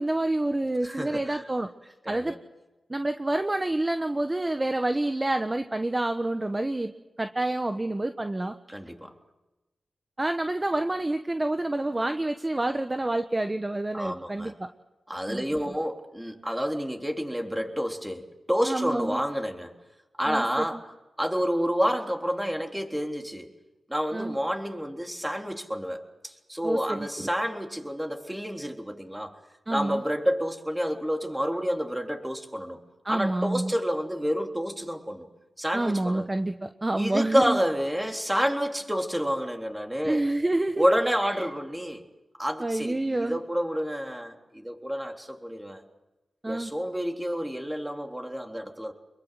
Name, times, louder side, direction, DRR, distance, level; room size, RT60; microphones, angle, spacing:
voice 1, 0.0-1.7 2.1-2.3 2.9-6.9 7.2-8.5 10.2-14.7 15.3-15.4 18.7-19.2 20.3-20.7 24.1-24.4 26.6-27.3 29.7-30.0 33.0-33.7 35.7-37.6 40.0-40.9 41.2-41.5 42.6-43.4 46.4-46.7, right 2 dB, 25° right, 7 dB, 1.2 m, -28 dB
voice 2, 0.8-1.4 2.0-2.4 8.7-9.1 13.9-14.5 15.1-19.7 20.2-20.8 21.2-23.5 23.9-29.4 29.7-32.8 33.1-35.3 35.6-36.3 36.9-40.2 40.8-42.0 42.4-45.8 46.5-48.9, equal, 5° right, 3 dB, 3.6 m, -29 dB
25.5 x 22.5 x 7.8 m, 1.1 s
cardioid pair, 55°, 0 cm